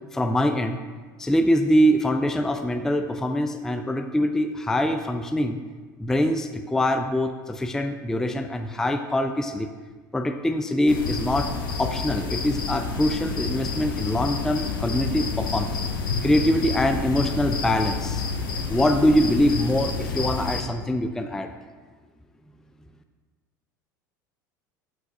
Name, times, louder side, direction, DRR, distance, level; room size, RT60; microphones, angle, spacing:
voice 1, 0.1-0.8 1.2-5.6 6.0-9.7 10.1-11.5 11.8-15.8 16.2-18.2 18.7-21.5, equal, 5° left, 7 dB, 0.3 m, -23 dB
sound 1, 10.9-20.6, left 4 dB, 80° left, 0.8 m, -29 dB
7.5 x 5.7 x 2.6 m, 1.4 s
hypercardioid pair, 75°, 11 cm